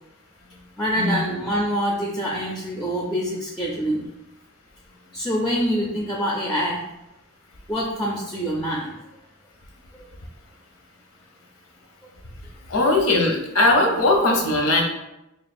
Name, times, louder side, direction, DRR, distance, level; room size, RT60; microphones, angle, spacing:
voice 1, 0.8-4.0 5.1-6.8 7.7-8.9 9.9-10.1, equal, 5° left, -2 dB, 0.4 m, -25 dB
voice 2, 12.7-14.8, left 2 dB, 80° left, 2 dB, 0.7 m, -19 dB
3.1 x 2.4 x 4.2 m, 0.92 s
head